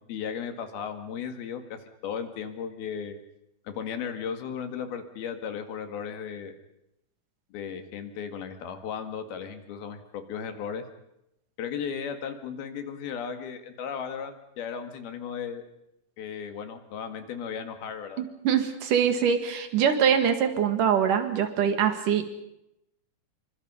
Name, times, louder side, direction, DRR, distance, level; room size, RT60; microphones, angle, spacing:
voice 1, 0.0-3.2 3.7-6.6 7.5-10.8 11.6-15.6 16.2-18.2, left 7 dB, 85° left, 7 dB, 3.9 m, -35 dB
voice 2, 18.2-22.3, right 8 dB, 65° right, 8 dB, 3.5 m, -24 dB
27.0 x 24.5 x 5.6 m, 0.84 s
omnidirectional pair, 4.3 m